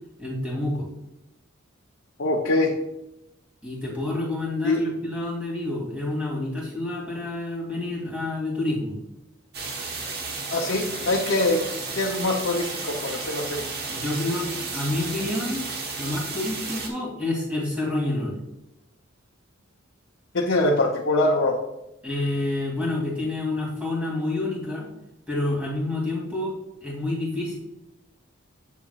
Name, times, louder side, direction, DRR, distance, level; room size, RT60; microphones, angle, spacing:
voice 1, 0.2-0.9 3.6-8.9 13.8-15.6 16.0-18.3 22.0-24.9 25.3-26.5 26.8-27.6, left 2 dB, 5° right, -4 dB, 2.5 m, -28 dB
voice 2, 2.2-2.7 4.6-4.8 10.5-11.6 11.9-13.7 20.3-21.6, left 2 dB, 65° left, -1 dB, 0.8 m, -23 dB
sound 1, 9.5-16.9, right 3 dB, 50° right, 1.2 m, -33 dB
8.3 x 6.9 x 2.4 m, 0.90 s
head